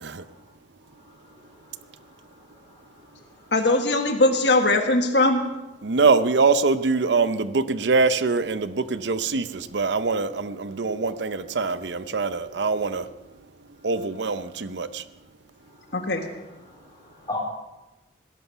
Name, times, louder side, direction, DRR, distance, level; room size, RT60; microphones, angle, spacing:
voice 1, 1.2-3.5 15.7-16.3 16.6-17.4, left 2 dB, 20° left, -1 dB, 4.0 m, -41 dB
voice 2, 3.5-5.4 15.9-16.2, left 2 dB, 65° left, 5 dB, 1.4 m, -20 dB
voice 3, 5.8-13.1 13.8-15.0, right 4 dB, 75° right, 13 dB, 0.7 m, -23 dB
19.0 x 11.0 x 5.7 m, 1.0 s
head